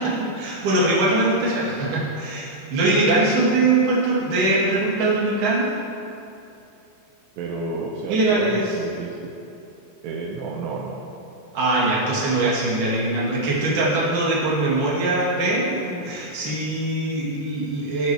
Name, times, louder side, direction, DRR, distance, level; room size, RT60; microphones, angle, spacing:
voice 1, 0.0-5.7 8.1-8.7 11.5-18.1, right 2 dB, 50° right, -6 dB, 3.4 m, -22 dB
voice 2, 7.4-9.3 10.0-11.0, right 3 dB, 80° right, -2 dB, 2.8 m, -31 dB
18.5 x 7.3 x 3.4 m, 2.8 s
omnidirectional pair, 5.1 m